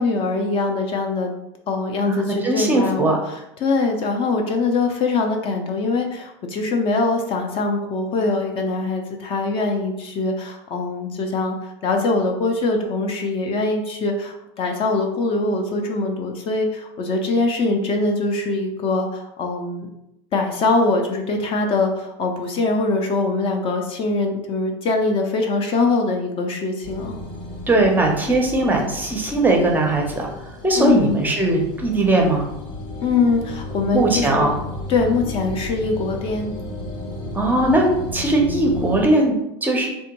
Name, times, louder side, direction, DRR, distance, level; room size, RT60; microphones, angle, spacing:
voice 1, 0.0-1.3 1.7-3.2 3.6-11.5 11.8-19.9 20.3-27.2 30.8-31.2 33.0-34.5 34.9-36.5, left 3 dB, 40° left, 3 dB, 0.4 m, -22 dB
voice 2, 2.1-3.2 27.7-30.3 30.6-32.5 33.9-34.6 37.3-37.9 38.1-39.9, right 2 dB, 10° right, 1 dB, 0.5 m, -19 dB
sound 1, 26.8-39.0, left 1 dB, 85° left, 1.0 m, -33 dB
3.4 x 2.2 x 2.9 m, 0.87 s
supercardioid pair, 120°, 15 cm